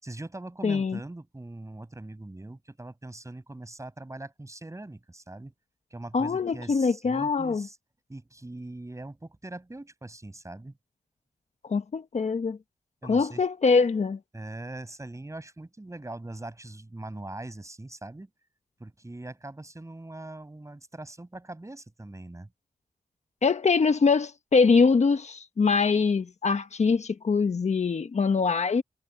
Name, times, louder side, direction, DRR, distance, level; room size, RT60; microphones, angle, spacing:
voice 1, 0.0-5.5 5.9-7.8 8.1-10.8 13.0-13.5 14.3-18.3 18.8-22.5, right 2 dB, 20° right, 7.1 m, -41 dB
voice 2, 0.6-1.0 6.1-7.7 11.7-12.6 13.0-14.2 23.4-28.8, left 4 dB, 55° left, 1.3 m, -23 dB
cardioid pair, 60°, 13 cm